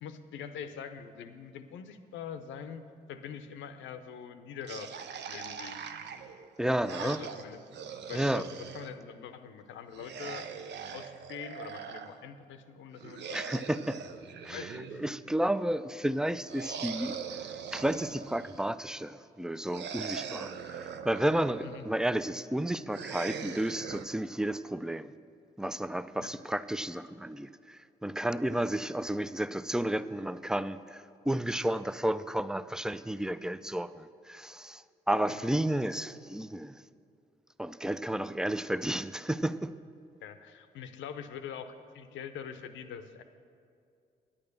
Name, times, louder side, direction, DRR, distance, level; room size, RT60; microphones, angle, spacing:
voice 1, 0.0-2.8 3.1-5.8 7.0-7.6 8.1-10.5 10.9-13.6 14.5-15.0 21.6-21.8 26.2-26.3 35.3-35.5 40.2-43.2, left 7 dB, 70° left, 10 dB, 0.7 m, -44 dB
sound 1, 4.6-8.9 9.9-12.1 13.0-15.3 16.5-18.7 19.7-21.9 22.9-24.1, right 7 dB, 60° right, 0.6 m, -41 dB
voice 2, 6.6-7.2 8.1-8.4 13.3-14.0 14.4-17.2 17.7-25.1 25.6-36.8 37.6-39.7, right 1 dB, 5° right, 14 dB, 0.4 m, -32 dB
9.8 x 8.7 x 6.6 m, 2.4 s
hypercardioid pair, 45°, 20 cm